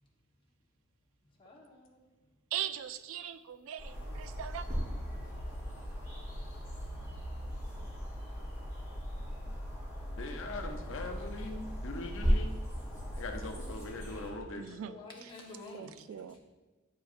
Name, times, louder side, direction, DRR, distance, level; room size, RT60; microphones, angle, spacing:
voice 1, 1.4-2.0 14.6-16.0, left 2 dB, 25° left, -3 dB, 1.2 m, -49 dB
voice 2, 2.5-4.7 14.6-15.3 15.7-16.4, right 10 dB, 70° right, 13 dB, 0.3 m, -40 dB
sound 1, 2.7-2.9 3.4-3.6 4.4-5.7 7.5-9.0 9.3-10.0 10.7-10.8 11.5-13.1, equal, 35° right, 1.2 m, -35 dB
sound 2, 3.8-14.3, equal, 15° right, 1.8 m, -41 dB
voice 3, 10.2-12.5 13.2-14.8, left 2 dB, 65° left, 3 dB, 0.7 m, -41 dB
9.2 x 4.6 x 2.5 m, 1.2 s
head